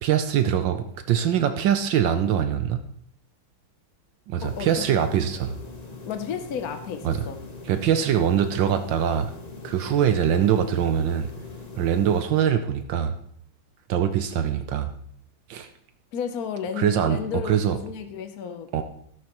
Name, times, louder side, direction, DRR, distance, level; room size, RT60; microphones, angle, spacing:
voice 1, 0.0-2.8 4.3-5.6 7.0-7.2 7.7-9.3 9.6-11.3 11.8-13.2 13.9-14.9 15.5-15.7 16.8-17.8 18.7-18.8, right 9 dB, 75° right, 8 dB, 1.4 m, -23 dB
voice 2, 4.4-4.8 6.1-7.4 16.1-18.8, left 7 dB, 60° left, 7 dB, 1.1 m, -33 dB
sound 1, 4.4-12.2, left 4 dB, 30° left, 0.8 m, -42 dB
13.0 x 12.5 x 3.0 m, 0.66 s
omnidirectional pair, 2.2 m